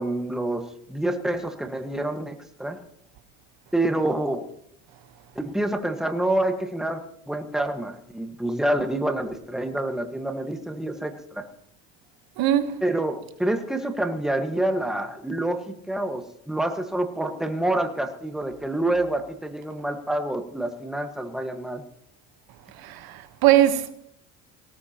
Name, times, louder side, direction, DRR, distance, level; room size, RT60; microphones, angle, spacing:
voice 1, 0.0-2.8 3.7-4.4 5.3-7.0 7.3-11.5 12.8-21.8, right 1 dB, ahead, 1.6 m, -27 dB
voice 2, 12.4-12.7 22.8-23.9, right 12 dB, 70° right, 1.3 m, -21 dB
19.5 x 17.5 x 3.0 m
supercardioid pair, 95°, 38 cm